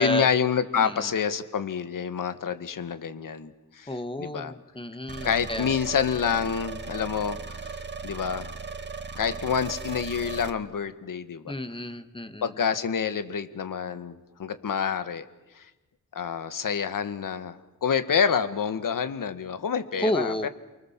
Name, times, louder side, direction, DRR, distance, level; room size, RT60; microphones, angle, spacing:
voice 1, 0.0-3.9 4.2-4.5 5.2-7.7 8.0-8.5 9.2-11.5 12.4-15.3 15.6-15.7 16.1-17.6 17.8-20.5, left 7 dB, 65° left, 11 dB, 1.9 m, -27 dB
voice 2, 0.8-1.1 3.9-5.7 11.5-12.6 20.0-20.5, equal, 15° left, 9 dB, 1.8 m, -31 dB
sound 1, 5.1-10.5, right 4 dB, 30° right, 1.7 m, -37 dB
29.5 x 24.5 x 7.5 m, 1.1 s
cardioid pair, 95°, 35 cm